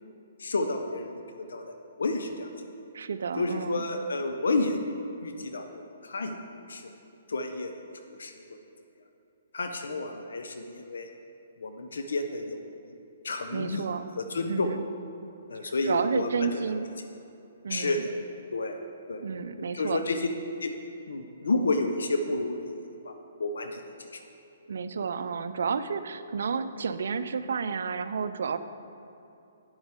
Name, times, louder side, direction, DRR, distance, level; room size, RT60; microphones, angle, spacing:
voice 1, 0.4-2.5 3.4-4.9 5.2-6.4 6.7-6.9 7.3-8.3 9.5-11.1 11.6-12.6 13.2-13.8 14.2-14.7 15.5-16.6 17.7-18.1 18.5-18.8 19.1-19.4 19.7-20.2 20.6-20.7 21.1-23.1 23.4-24.2, left 2 dB, 80° left, 6 dB, 0.7 m, -31 dB
voice 2, 2.9-3.9 13.5-14.1 14.5-14.8 15.6-16.9 17.6-18.0 19.2-20.0 24.7-28.6, right 5 dB, 70° right, 11 dB, 0.5 m, -31 dB
9.6 x 7.9 x 3.7 m, 2.8 s
hypercardioid pair, 140°, 0 cm